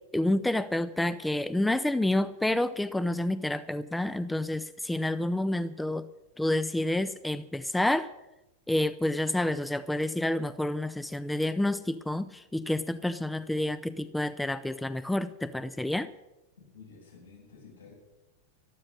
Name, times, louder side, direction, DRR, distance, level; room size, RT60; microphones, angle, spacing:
voice 1, 0.1-6.0 6.4-8.1 8.7-16.1, left 1 dB, 5° left, 15 dB, 0.5 m, -29 dB
voice 2, 16.7-17.9, left 5 dB, 75° left, -4 dB, 7.5 m, -51 dB
13.0 x 13.0 x 6.5 m, 0.96 s
figure-of-eight pair, 90°, 0 cm